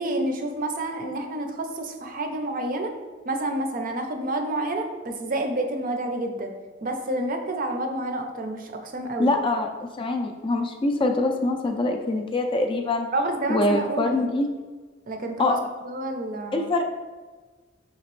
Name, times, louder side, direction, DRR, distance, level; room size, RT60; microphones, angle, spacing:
voice 1, 0.0-2.9 3.3-6.5 6.8-9.3 13.1-14.2 15.1-15.6 15.8-16.7, right 1 dB, 45° right, 4 dB, 0.5 m, -29 dB
voice 2, 9.2-13.1 13.5-14.5 15.4-15.6 16.5-16.8, left 2 dB, 25° left, 4 dB, 0.3 m, -24 dB
4.9 x 2.9 x 3.0 m, 1.4 s
head